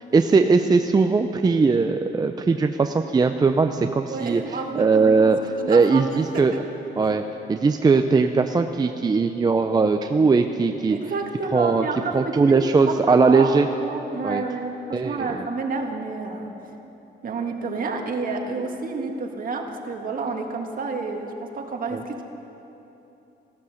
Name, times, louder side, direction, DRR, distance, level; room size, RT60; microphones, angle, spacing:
voice 1, 0.1-4.4 4.8-5.4 5.7-6.5 7.0-7.2 7.5-11.0 11.5-11.8 12.1-13.7 14.2-14.4 14.9-15.2, right 4 dB, 20° right, 6 dB, 0.5 m, -19 dB
voice 2, 4.1-6.6 7.8-8.1 10.9-16.5 17.2-22.2, right 4 dB, 45° right, 3 dB, 1.8 m, -30 dB
16.5 x 12.5 x 6.5 m, 3.0 s
cardioid pair, 120°, 19 cm